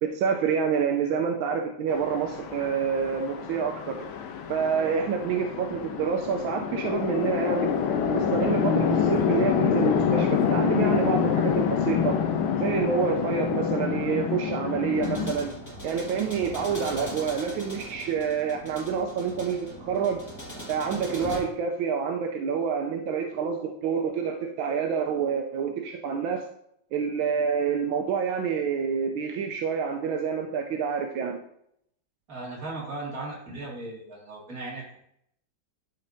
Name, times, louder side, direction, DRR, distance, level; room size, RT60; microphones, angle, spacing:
voice 1, 0.0-3.9 4.5-7.7 8.1-12.2 12.6-15.5 15.8-20.2 20.7-26.4 26.9-31.4, right 6 dB, 85° right, 3 dB, 1.4 m, -27 dB
Chatter / Traffic noise roadway noise / Train, 1.9-15.3, left 7 dB, 85° left, 1.6 m, -27 dB
sound 1, 14.9-21.4, equal, 10° left, 1.6 m, -39 dB
voice 2, 32.3-35.0, right 2 dB, 45° right, -4 dB, 2.5 m, -37 dB
11.5 x 5.4 x 2.7 m, 0.73 s
omnidirectional pair, 2.2 m